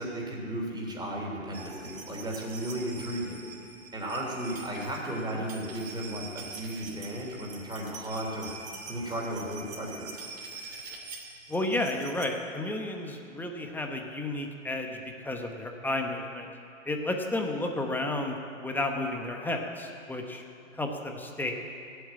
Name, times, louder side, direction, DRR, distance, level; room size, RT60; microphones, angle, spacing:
voice 1, 0.0-3.4 3.9-10.2, right 1 dB, 10° right, -2 dB, 3.3 m, -35 dB
sound 1, 1.5-12.3 13.4-13.5 13.6-13.7, right 4 dB, 75° right, 2.9 m, -45 dB
voice 2, 11.5-16.5 16.9-20.4 20.7-21.5, left 2 dB, 5° left, 3 dB, 1.0 m, -32 dB
15.0 x 8.1 x 8.8 m, 2.6 s
hypercardioid pair, 130°, 40 cm